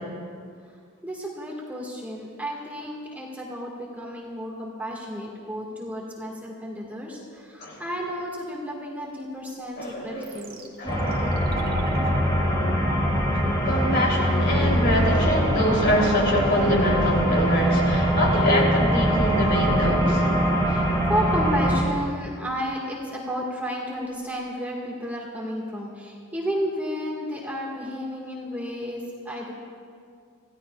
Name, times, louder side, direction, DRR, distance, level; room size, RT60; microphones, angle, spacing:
voice 1, 1.0-10.6 20.4-29.5, equal, 5° right, -3 dB, 1.8 m, -32 dB
voice 2, 9.8-11.5 13.3-20.3, equal, 50° left, -2 dB, 3.3 m, -25 dB
sound 1, 10.2-22.2 22.5-22.6, right 2 dB, 40° right, 1.5 m, -38 dB
sound 2, 10.9-21.8, equal, 15° left, 2.5 m, -23 dB
26.0 x 16.0 x 2.4 m, 2.2 s
head